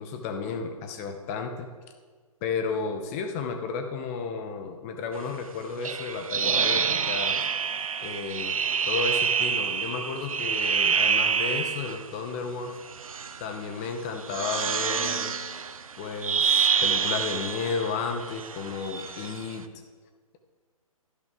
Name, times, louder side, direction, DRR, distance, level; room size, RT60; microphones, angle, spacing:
voice 1, 0.0-1.7 2.4-7.5 8.0-8.6 8.9-12.7 13.4-15.3 16.0-19.7, left 5 dB, 25° left, 6 dB, 0.8 m, -33 dB
sound 1, 5.8-12.1 12.9-13.5 14.2-19.5, right 6 dB, 70° right, 0.7 m, -27 dB
12.0 x 11.0 x 3.6 m, 1.5 s
figure-of-eight pair, 135°, 18 cm